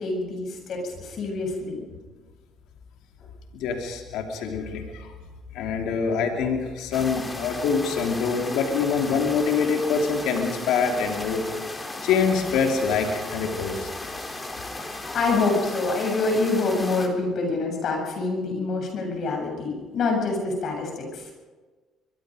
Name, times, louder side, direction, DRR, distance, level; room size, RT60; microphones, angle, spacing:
voice 1, 0.0-1.9 15.0-21.2, left 3 dB, 60° left, 2 dB, 7.8 m, -26 dB
voice 2, 3.5-5.1 5.5-11.4 12.0-13.9 14.8-14.9, left 5 dB, 80° left, 3 dB, 3.0 m, -25 dB
sound 1, 6.9-17.1, left 2 dB, 20° left, 3.8 m, -36 dB
24.0 x 23.0 x 5.1 m, 1.3 s
supercardioid pair, 75°, 0 cm